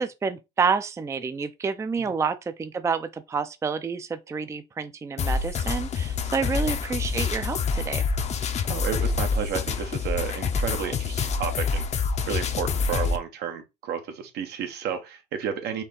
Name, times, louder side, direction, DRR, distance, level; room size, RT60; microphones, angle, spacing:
voice 1, 0.0-8.0, right 5 dB, 15° right, 0.4 m, -29 dB
sound 1, 5.2-13.2, left 5 dB, 40° left, 0.6 m, -27 dB
voice 2, 8.7-15.8, right 8 dB, 75° right, 1.0 m, -32 dB
4.3 x 2.8 x 3.7 m
cardioid pair, 110°, 17 cm